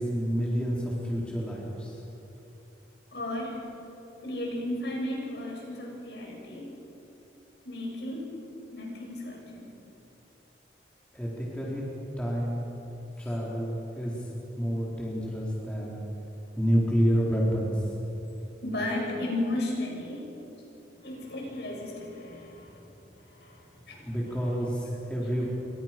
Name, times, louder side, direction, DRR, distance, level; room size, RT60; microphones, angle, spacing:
voice 1, 0.0-2.0 11.1-11.8 12.2-12.6 13.2-14.3 14.6-16.0 16.6-17.9 24.0-25.5, equal, 5° left, -5 dB, 4.1 m, -29 dB
voice 2, 3.1-3.6 4.2-6.7 7.6-8.4 8.7-9.7 18.6-20.3 21.0-22.8 23.2-23.6 23.9-24.1, left 1 dB, 65° left, -1 dB, 7.6 m, -34 dB
29.0 x 25.0 x 6.1 m, 3.0 s
head